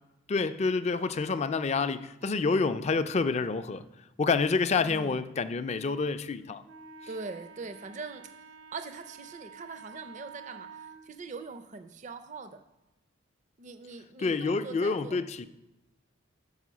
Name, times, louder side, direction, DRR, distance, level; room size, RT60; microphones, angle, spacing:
voice 1, 0.3-3.8 4.2-6.6 14.2-15.5, left 4 dB, 35° left, 0.4 m, -28 dB
voice 2, 4.9-5.2 7.1-8.4 8.7-12.6 13.6-15.2, right 4 dB, 40° right, 0.4 m, -42 dB
Wind instrument woodwind instrument, 6.6-11.0, right 5 dB, 80° right, 0.8 m, -49 dB
5.8 x 5.5 x 6.1 m
head